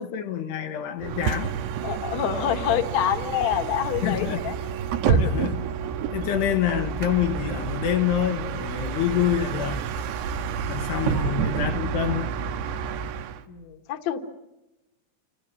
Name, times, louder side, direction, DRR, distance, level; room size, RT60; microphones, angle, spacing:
voice 1, 0.0-1.6 4.0-4.4 5.2-5.7 6.1-9.8 10.7-12.3, left 10 dB, 80° left, 3.4 m, -26 dB
Bus, 1.0-13.4, right 7 dB, 85° right, 3.3 m, -29 dB
voice 2, 1.8-4.6 5.0-5.2 6.2-6.3 11.1-11.3 13.5-14.2, left 10 dB, 55° left, 2.2 m, -27 dB
30.0 x 28.5 x 6.0 m
omnidirectional pair, 4.8 m